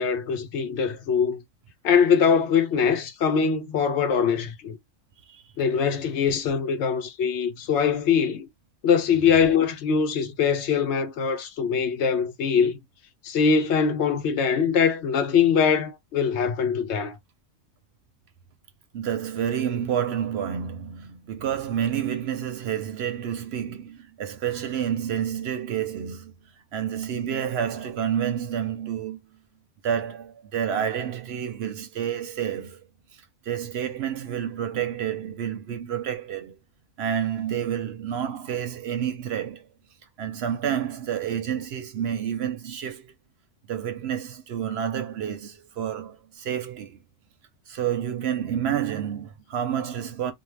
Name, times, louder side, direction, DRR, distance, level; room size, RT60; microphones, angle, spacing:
voice 1, 0.0-1.4 1.8-4.8 5.6-8.5 8.8-12.8 13.2-17.2, left 6 dB, 70° left, 0.8 m, -22 dB
voice 2, 18.9-26.3 26.7-29.2 29.8-32.8 33.5-36.6 37.0-39.7 40.2-43.1 43.7-47.0 47.7-50.3, right 9 dB, 65° right, 0.7 m, -29 dB
2.6 x 2.1 x 3.2 m
omnidirectional pair, 1.3 m